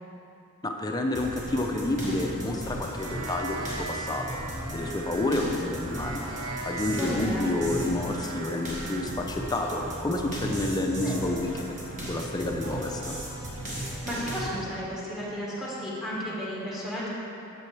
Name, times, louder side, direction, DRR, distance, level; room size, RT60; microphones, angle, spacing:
voice 1, 0.6-6.3 6.7-11.5 12.1-13.2, left 2 dB, 20° left, 2 dB, 0.5 m, -29 dB
sound 1, 1.2-14.5, right 1 dB, 40° right, 1.3 m, -36 dB
sound 2, 3.0-9.1, right 3 dB, 80° right, 0.6 m, -40 dB
voice 2, 6.9-7.5 10.9-11.3 13.7-17.1, equal, ahead, -7 dB, 1.4 m, -34 dB
7.5 x 6.9 x 3.3 m, 2.8 s
head